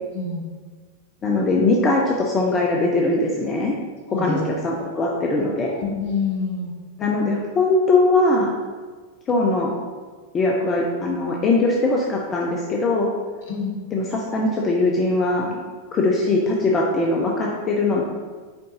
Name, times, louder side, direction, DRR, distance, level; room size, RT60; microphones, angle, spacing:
voice 1, 1.2-3.7 4.2-5.8 7.0-8.6 9.3-9.7 10.3-13.1 13.9-15.6 15.9-18.0, left 2 dB, 25° left, -1 dB, 0.7 m, -21 dB
voice 2, 5.8-6.7 13.5-13.7, left 4 dB, 55° left, -2 dB, 1.5 m, -26 dB
8.7 x 3.8 x 2.9 m, 1.5 s
figure-of-eight pair, 90°, 0 cm